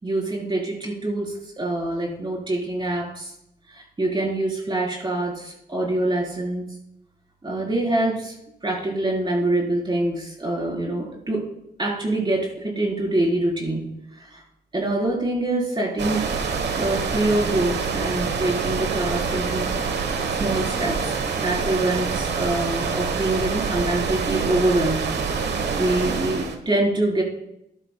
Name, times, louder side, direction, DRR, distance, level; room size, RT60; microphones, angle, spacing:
voice 1, 0.0-3.3 3.7-6.6 7.4-8.3 8.6-11.5 11.8-13.9 14.1-14.4 14.7-16.3 16.7-19.9 20.3-25.1 25.8-27.2, right 2 dB, 25° right, -2 dB, 4.4 m, -25 dB
sound 1, 16.0-26.6, right 5 dB, 80° right, 1.2 m, -26 dB
14.5 x 10.5 x 2.3 m, 0.81 s
cardioid pair, 90°, 17 cm